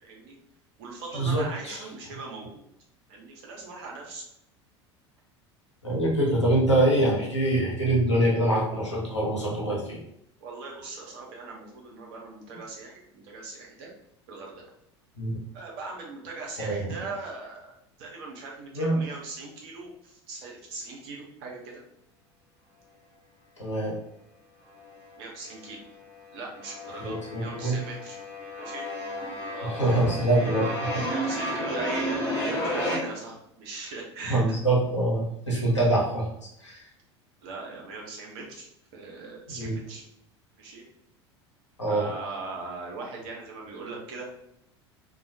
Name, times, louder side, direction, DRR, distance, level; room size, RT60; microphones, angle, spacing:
voice 1, 0.0-0.3 0.8-2.6 3.1-4.2 10.4-13.9 14.3-14.6 15.5-21.8 25.2-25.9 26.3-28.2 28.6-28.8 29.4-30.1 30.9-34.6 37.4-38.7 38.9-40.0 40.6-40.8 41.9-44.3, right 3 dB, 55° right, -1 dB, 0.8 m, -40 dB
voice 2, 1.1-1.8 5.8-10.0 15.2-15.3 16.6-16.9 18.7-19.0 23.6-23.9 27.0-27.8 29.6-31.4 34.3-36.3 36.6-36.8 39.6-39.8 41.8-42.1, right 1 dB, 85° left, -4 dB, 0.8 m, -25 dB
sound 1, 24.7-25.5 25.8-33.0, equal, 15° left, 1.2 m, -32 dB
2.3 x 2.2 x 2.7 m, 0.77 s
figure-of-eight pair, 75°, 15 cm